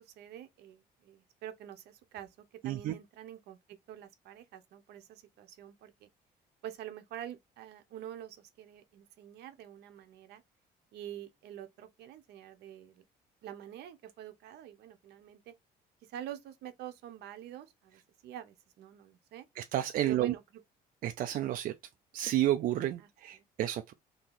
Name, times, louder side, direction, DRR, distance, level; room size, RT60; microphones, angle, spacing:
voice 1, 0.0-2.3 2.6-6.1 6.6-10.4 10.9-13.0 13.4-15.5 16.1-19.5 20.0-20.4 23.0-23.4, right 11 dB, 75° right, 0.8 m, -47 dB
voice 2, 2.6-2.9 19.6-20.3 21.0-21.7 22.1-23.9, right 13 dB, 55° right, 0.4 m, -31 dB
2.8 x 2.7 x 3.7 m
cardioid pair, 110°, 17 cm